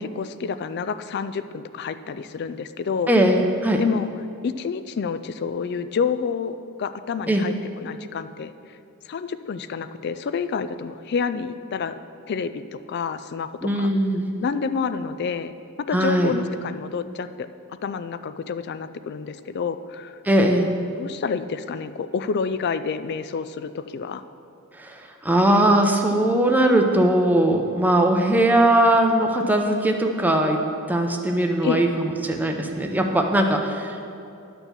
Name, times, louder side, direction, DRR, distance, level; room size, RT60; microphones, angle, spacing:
voice 1, 0.0-3.1 3.8-4.1 4.4-8.8 9.1-12.0 12.3-13.9 14.4-15.5 15.9-17.5 17.8-20.2 20.9-24.2 31.6-31.8, left 5 dB, 50° left, 12 dB, 0.3 m, -28 dB
voice 2, 3.1-3.8 7.3-7.4 13.6-14.3 15.9-16.3 20.2-20.7 24.8-30.6 30.9-34.1, right 1 dB, 10° right, 3 dB, 0.6 m, -20 dB
11.0 x 4.5 x 6.7 m, 2.6 s
head